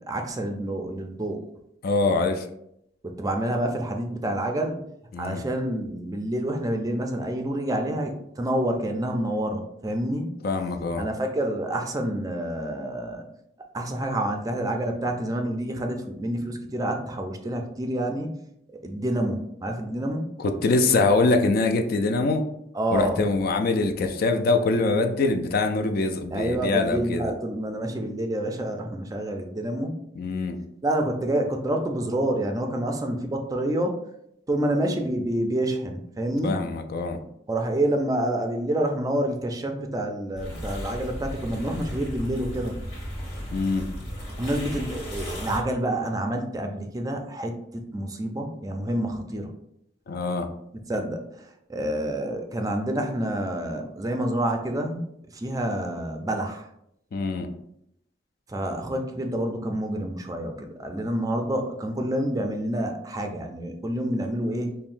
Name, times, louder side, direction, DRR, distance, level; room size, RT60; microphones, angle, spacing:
voice 1, 0.0-1.4 3.0-4.8 5.2-10.3 11.0-13.2 13.7-18.3 18.8-20.3 22.7-23.2 26.3-29.9 30.8-34.0 34.5-36.6 37.5-42.8 44.4-49.5 50.9-55.1 55.3-56.7 58.5-64.8, right 1 dB, 20° right, 4 dB, 0.4 m, -28 dB
voice 2, 1.8-2.5 5.1-5.4 10.4-11.1 20.4-22.5 22.9-27.3 30.2-30.6 36.4-37.2 43.5-43.9 50.1-50.5 57.1-57.5, left 3 dB, 55° left, 6 dB, 0.4 m, -24 dB
sound 1, 40.3-45.6, equal, 35° left, 1.4 m, -35 dB
5.5 x 2.1 x 2.5 m, 0.77 s
head